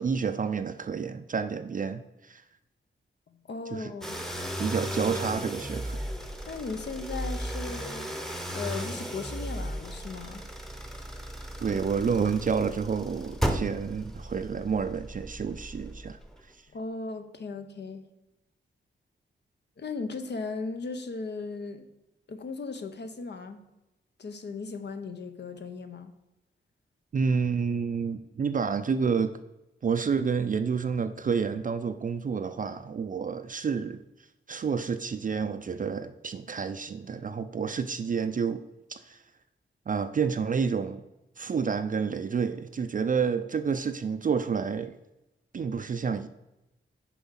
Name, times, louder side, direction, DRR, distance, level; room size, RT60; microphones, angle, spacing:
voice 1, 0.0-2.4 3.7-3.9 4.6-6.0 11.6-16.2 27.1-29.3 29.8-34.0 34.5-38.6 38.9-39.2 39.9-41.0 41.4-45.0 45.5-46.3, right 6 dB, 40° right, 9 dB, 0.4 m, -29 dB
voice 2, 3.3-4.2 6.4-8.1 8.5-10.5 16.7-18.1 19.8-21.8 22.3-23.6 24.2-26.1, left 4 dB, 60° left, 8 dB, 0.8 m, -37 dB
sound 1, 4.0-16.4, equal, ahead, 0.9 m, -35 dB
7.0 x 4.8 x 5.7 m, 0.95 s
wide cardioid pair, 90°, 20 cm